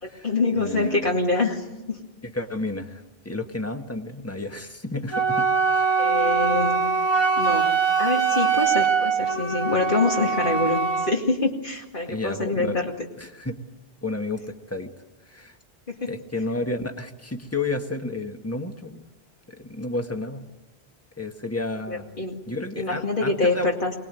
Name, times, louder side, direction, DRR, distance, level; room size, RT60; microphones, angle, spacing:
voice 1, 0.0-2.0 6.0-6.8 7.4-12.9 15.9-16.1 21.9-22.4 22.8-23.9, left 3 dB, 55° left, -1 dB, 2.4 m, -25 dB
voice 2, 0.6-1.0 2.2-5.4 5.7-6.1 12.1-12.8 13.2-13.6 14.0-14.9 15.3-15.6 16.1-19.1 19.5-20.5 21.2-23.7, left 2 dB, 15° left, 5 dB, 1.6 m, -31 dB
Wind instrument woodwind instrument, 5.1-11.2, right 5 dB, 25° right, 1.3 m, -22 dB
24.0 x 20.0 x 9.2 m, 1.0 s
omnidirectional pair, 1.0 m